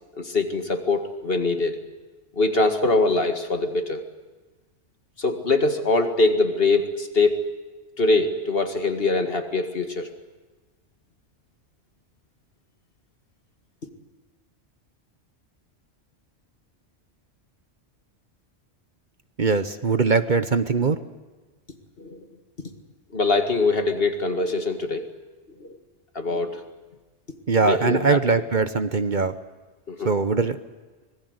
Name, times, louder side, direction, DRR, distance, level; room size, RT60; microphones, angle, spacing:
voice 1, 0.2-1.8 2.4-4.0 5.2-7.5 8.0-10.1 22.0-22.2 23.1-25.1 25.6-25.8 26.2-26.6 27.6-28.2 29.9-30.1, left 3 dB, 55° left, 7 dB, 2.2 m, -23 dB
voice 2, 19.4-21.0 27.5-29.3 30.0-30.6, right 4 dB, 45° right, 11 dB, 1.1 m, -21 dB
25.0 x 21.0 x 8.1 m, 1.2 s
omnidirectional pair, 1.1 m